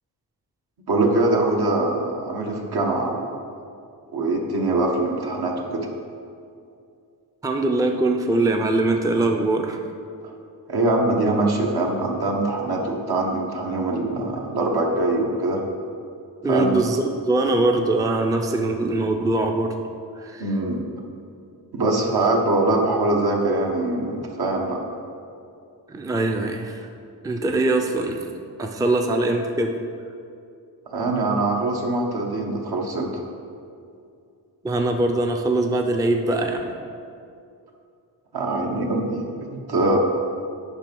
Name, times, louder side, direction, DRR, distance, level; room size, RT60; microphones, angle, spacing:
voice 1, 0.9-3.3 4.1-5.9 10.2-10.3 10.7-15.6 16.5-16.7 20.4-20.8 21.7-24.8 30.9-33.2 38.3-39.2 39.5-40.0, right 2 dB, 65° right, 0 dB, 1.4 m, -23 dB
voice 2, 7.4-9.8 16.4-19.7 20.2-20.4 25.9-26.9 27.2-28.3 28.6-29.7 34.6-36.7, right 2 dB, 10° right, 3 dB, 0.5 m, -22 dB
9.0 x 5.4 x 5.3 m, 2.5 s
cardioid pair, 95°, 42 cm